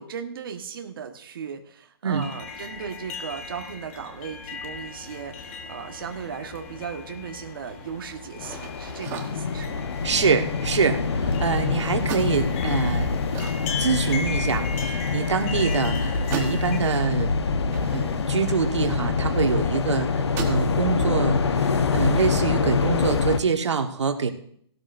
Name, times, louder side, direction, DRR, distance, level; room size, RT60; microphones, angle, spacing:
voice 1, 0.0-9.8, right 7 dB, 50° right, 4 dB, 1.4 m, -37 dB
sound 1, 2.1-16.8, left 5 dB, 30° left, 1.4 m, -37 dB
sound 2, 8.4-23.4, left 4 dB, 70° left, 1.1 m, -25 dB
sound 3, 8.4-11.6 12.0-14.7 15.0-15.1 15.4-19.3 19.7-19.9 20.2-20.7, right 7 dB, 15° right, 1.2 m, -40 dB
voice 2, 10.0-13.1 13.8-17.3 17.9-24.3, right 5 dB, 90° right, 5 dB, 1.5 m, -25 dB
17.0 x 12.5 x 2.6 m, 0.62 s
hypercardioid pair, 165°, 14 cm